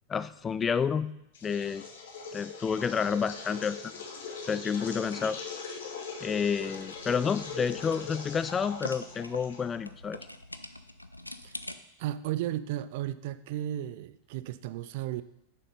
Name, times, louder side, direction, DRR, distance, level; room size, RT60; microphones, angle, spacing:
voice 1, 0.1-1.1 1.4-1.8 2.3-4.0 4.5-5.4 6.2-10.2, left 6 dB, 20° left, 15 dB, 0.4 m, -30 dB
sound 1, 1.3-9.9, left 5 dB, 60° left, 1.3 m, -41 dB
sound 2, 6.5-11.8, left 1 dB, 85° left, 0.4 m, -45 dB
voice 2, 12.0-15.2, right 13 dB, 50° right, 14 dB, 0.4 m, -34 dB
6.6 x 6.4 x 5.4 m, 0.81 s
figure-of-eight pair, 90°, 0 cm